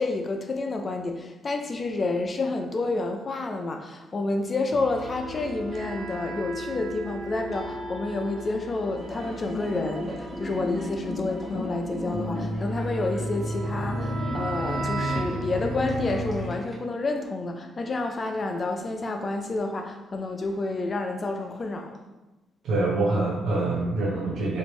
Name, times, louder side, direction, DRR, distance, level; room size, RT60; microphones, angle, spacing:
voice 1, 0.0-22.0, left 3 dB, 35° left, 4 dB, 0.4 m, -29 dB
sound 1, 4.7-16.5, right 1 dB, 40° right, 1.0 m, -33 dB
sound 2, 9.0-16.7, left 2 dB, 10° left, 1.0 m, -37 dB
voice 2, 22.6-24.6, right 2 dB, 70° right, -4 dB, 0.6 m, -25 dB
3.2 x 2.5 x 3.1 m, 1.1 s
cardioid pair, 90°, 0 cm